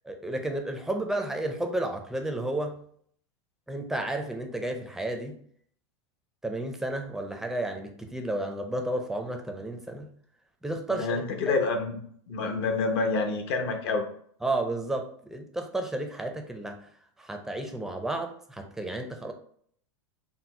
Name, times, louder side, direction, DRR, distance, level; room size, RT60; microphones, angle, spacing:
voice 1, 0.1-2.8 3.7-5.4 6.4-10.1 10.6-11.5 14.4-16.8 17.2-19.3, right 1 dB, 5° right, 4 dB, 0.4 m, -32 dB
voice 2, 10.9-12.0 12.3-14.0, left 3 dB, 65° left, 5 dB, 0.8 m, -27 dB
4.2 x 2.1 x 4.1 m, 0.62 s
supercardioid pair, 135°, 15 cm